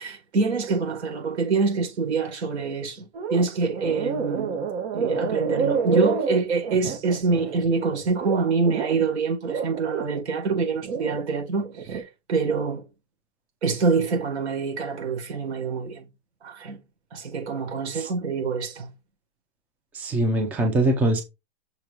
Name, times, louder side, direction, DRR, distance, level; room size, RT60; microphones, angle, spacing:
voice 1, 0.0-4.6 4.9-12.9 13.6-16.1 16.4-16.8 17.1-18.9, right 4 dB, 75° right, 5.2 m, -26 dB
sound 1, 3.1-3.5 3.7-9.1 9.5-11.2 11.6-12.0, right 5 dB, 60° right, 2.3 m, -28 dB
voice 2, 19.9-21.2, right 1 dB, 5° right, 0.5 m, -22 dB
6.7 x 5.2 x 4.4 m
supercardioid pair, 165°, 33 cm